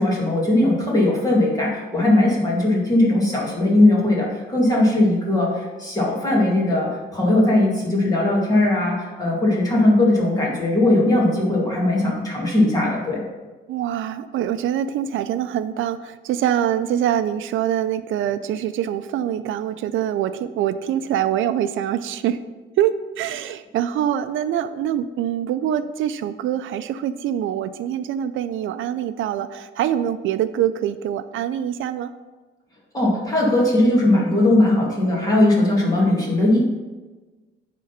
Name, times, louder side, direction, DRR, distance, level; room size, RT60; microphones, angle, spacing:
voice 1, 0.0-13.2 32.9-36.6, left 1 dB, 20° left, -4 dB, 2.1 m, -19 dB
voice 2, 13.7-22.4 22.8-32.1, right 10 dB, 80° right, 12 dB, 0.4 m, -24 dB
9.8 x 3.8 x 5.7 m, 1.2 s
cardioid pair, 170°, 20 cm